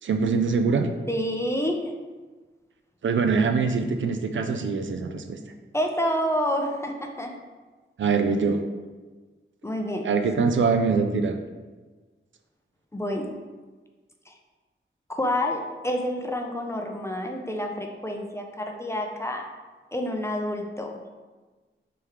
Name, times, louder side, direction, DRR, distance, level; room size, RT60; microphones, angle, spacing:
voice 1, 0.0-0.9 3.0-5.4 8.0-8.6 10.0-11.4, right 5 dB, 65° right, 6 dB, 0.4 m, -23 dB
voice 2, 1.1-1.9 5.7-7.4 9.6-10.1 12.9-13.4 14.3-14.4 15.1-19.4 19.9-21.0, equal, 15° left, 2 dB, 0.4 m, -28 dB
3.4 x 3.2 x 4.6 m, 1.3 s
wide cardioid pair, 125°, 21 cm